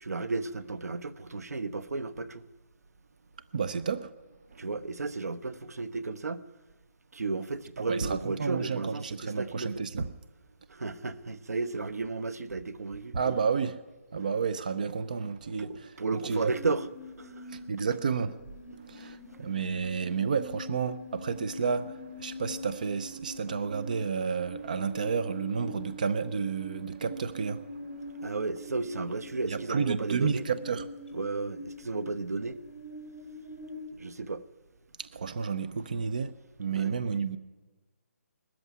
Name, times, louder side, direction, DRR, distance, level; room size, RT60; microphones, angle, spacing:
voice 1, 0.0-2.4 4.6-6.4 7.1-9.8 10.7-13.2 15.6-16.9 17.2-17.5 19.0-19.2 20.1-20.2 28.2-30.4 31.1-32.6 33.9-34.4 36.7-37.0, right 3 dB, 85° right, 1.2 m, -33 dB
voice 2, 3.5-4.1 4.5-4.7 7.9-10.1 13.1-13.8 14.1-16.5 17.5-18.4 18.8-28.3 29.5-30.8 35.0-36.3 36.6-37.4, right 5 dB, 30° right, 0.6 m, -31 dB
sound 1, 16.2-33.9, equal, 5° right, 2.6 m, -44 dB
20.0 x 13.5 x 9.5 m
hypercardioid pair, 180°, 8 cm